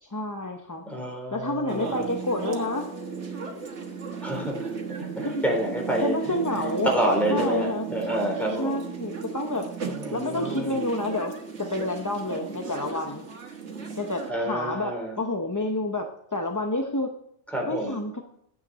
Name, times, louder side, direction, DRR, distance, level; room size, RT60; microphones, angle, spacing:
voice 1, 0.0-0.8 1.3-2.9 5.2-5.4 6.0-7.9 8.6-9.7 10.1-13.3 14.0-17.1 17.7-18.2, left 2 dB, 20° left, 2 dB, 0.6 m, -29 dB
voice 2, 0.8-2.1 4.2-6.2 6.9-8.8 9.8-10.7 14.3-15.2 17.5-18.0, right 1 dB, ahead, -1 dB, 3.5 m, -28 dB
sound 1, 1.7-14.3, right 5 dB, 65° right, 1.7 m, -35 dB
9.6 x 8.2 x 4.1 m, 0.72 s
omnidirectional pair, 1.3 m